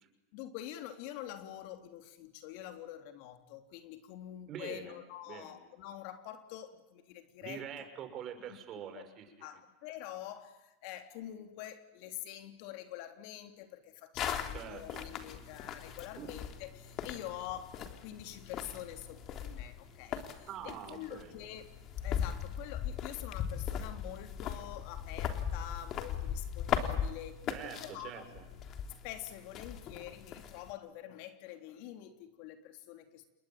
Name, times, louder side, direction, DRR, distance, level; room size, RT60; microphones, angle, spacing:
voice 1, 0.3-7.9 8.5-8.6 8.9-9.1 9.4-21.7 22.0-28.2 28.9-33.2, left 12 dB, 60° left, 7 dB, 3.4 m, -46 dB
voice 2, 4.5-5.0 5.3-5.5 7.4-9.2 14.5-15.0 16.2-16.3 20.5-21.3 27.5-28.4, right 8 dB, 40° right, 7 dB, 6.1 m, -44 dB
sound 1, 14.2-30.7, left 8 dB, 45° left, 3.4 m, -39 dB
29.0 x 21.5 x 9.1 m, 0.97 s
hypercardioid pair, 100°, 0 cm